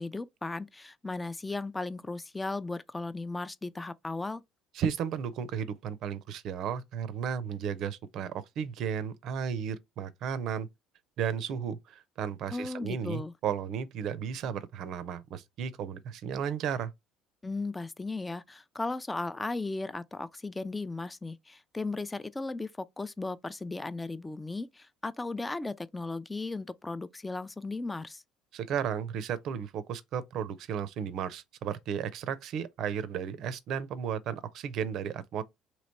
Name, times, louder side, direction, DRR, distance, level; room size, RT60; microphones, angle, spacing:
voice 1, 0.0-4.4 12.5-13.3 17.4-28.2, left 3 dB, 15° left, 0.4 m, -36 dB
voice 2, 4.7-10.7 11.2-16.9 28.5-35.4, right 8 dB, 60° right, 0.6 m, -34 dB
3.1 x 3.0 x 4.1 m
hypercardioid pair, 70°, 0 cm